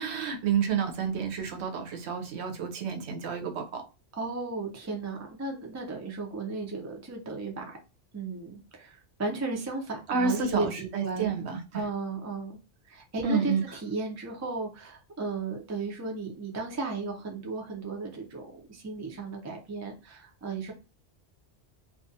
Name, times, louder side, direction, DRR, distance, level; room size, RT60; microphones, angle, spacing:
voice 1, 0.0-3.8 10.1-11.8 13.2-13.6, right 6 dB, 75° right, 0.9 m, -29 dB
voice 2, 4.1-7.8 8.1-11.4 11.7-12.6 12.9-20.7, right 3 dB, 25° right, 0.4 m, -35 dB
2.4 x 2.3 x 2.6 m
omnidirectional pair, 1.1 m